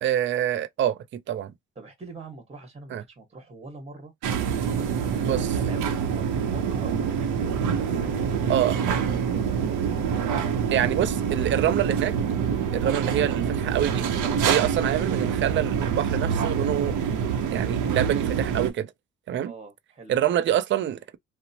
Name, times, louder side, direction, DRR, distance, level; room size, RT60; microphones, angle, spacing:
voice 1, 0.0-1.0 1.3-1.5 2.9-3.0 5.2-5.5 8.5-8.8 10.7-12.1 12.7-14.1 14.5-16.9 17.5-18.9 19.3-19.5 20.1-21.2, right 11 dB, 40° right, 0.4 m, -26 dB
voice 2, 1.7-4.1 4.7-9.5 19.4-20.1, right 3 dB, 20° right, 1.3 m, -44 dB
sound 1, 4.2-18.7, right 7 dB, 85° right, 0.6 m, -26 dB
2.8 x 2.0 x 2.8 m
cardioid pair, 90°, 30 cm